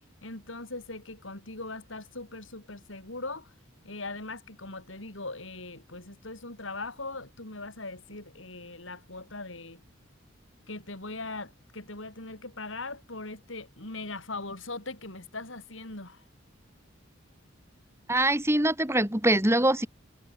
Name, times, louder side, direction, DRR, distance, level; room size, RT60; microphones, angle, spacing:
voice 1, 0.2-3.5 3.8-9.8 10.7-16.2, left 2 dB, 75° left, 6.0 m, -40 dB
voice 2, 18.1-19.9, right 1 dB, 15° right, 3.3 m, -23 dB
head